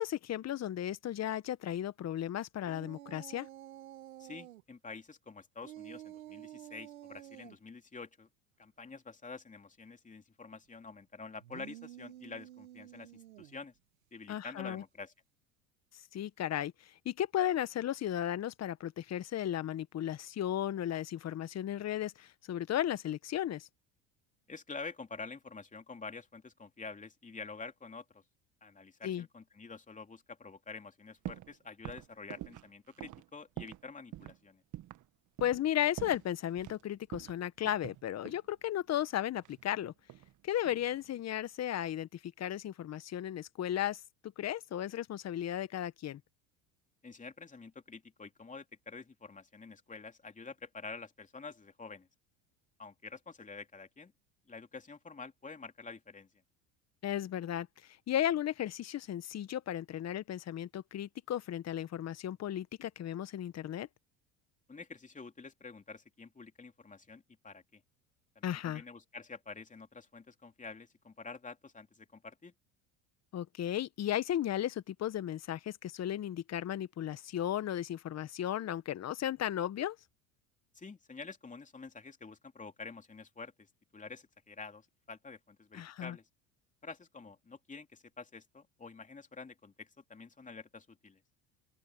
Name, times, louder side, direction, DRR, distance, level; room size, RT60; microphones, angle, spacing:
voice 1, 0.0-3.5 14.3-14.8 16.1-23.7 29.0-29.2 35.4-39.9 40.4-44.0 44.4-46.2 57.0-57.7 58.1-63.9 68.4-68.8 73.3-80.0 85.7-86.2, left 11 dB, 40° left, 1.5 m, -35 dB
sound 1, 2.6-4.6 5.6-7.6 11.4-13.6, right 13 dB, 85° right, 2.0 m, -50 dB
voice 2, 4.2-8.3 8.6-13.7 14.1-15.1 24.5-28.2 28.6-34.6 47.0-52.1 52.8-54.1 54.5-56.3 64.7-67.8 68.3-72.5 80.7-83.7 83.9-86.3 86.8-91.2, left 4 dB, 20° left, 3.2 m, -48 dB
sound 2, 31.2-31.5 31.8-33.9 34.1-34.4 34.7-35.1 35.4-35.7 36.0-36.8 37.1-38.5 39.4-40.3 40.6-41.1, right 14 dB, 50° right, 1.6 m, -46 dB
open air
hypercardioid pair, 85°, 40 cm